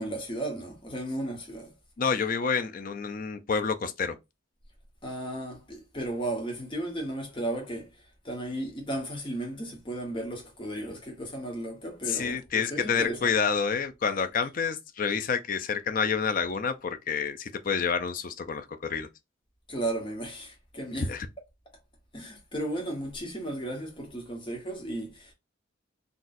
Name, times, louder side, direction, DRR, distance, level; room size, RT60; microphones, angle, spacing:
voice 1, 0.0-1.7 5.0-7.9 8.2-13.2 19.7-21.1 22.1-25.3, right 1 dB, 25° left, 1.0 m, -34 dB
voice 2, 2.0-4.2 12.1-19.1 21.1-21.3, left 6 dB, 45° left, 0.4 m, -28 dB
3.9 x 2.3 x 2.5 m
head